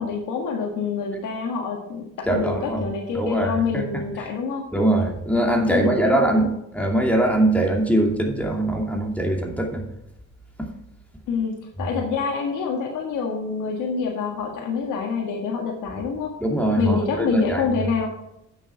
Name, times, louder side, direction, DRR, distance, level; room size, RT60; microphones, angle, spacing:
voice 1, 0.0-4.7 5.7-6.5 11.3-16.3 16.8-18.1, left 5 dB, 90° left, 1 dB, 1.7 m, -26 dB
voice 2, 2.3-2.8 3.1-4.3 4.7-9.8 10.6-10.7 16.4-17.8, right 1 dB, 5° left, 1 dB, 2.5 m, -22 dB
9.2 x 6.6 x 5.9 m, 0.83 s
cardioid pair, 90°, 30 cm